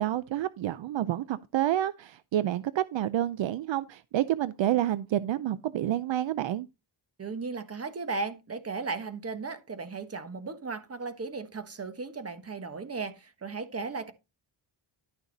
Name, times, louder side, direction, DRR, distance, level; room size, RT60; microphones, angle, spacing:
voice 1, 0.0-6.7, right 12 dB, 70° right, 0.6 m, -29 dB
voice 2, 7.2-14.1, right 4 dB, 30° right, 1.4 m, -36 dB
11.5 x 6.4 x 4.1 m
wide cardioid pair, 130°, 47 cm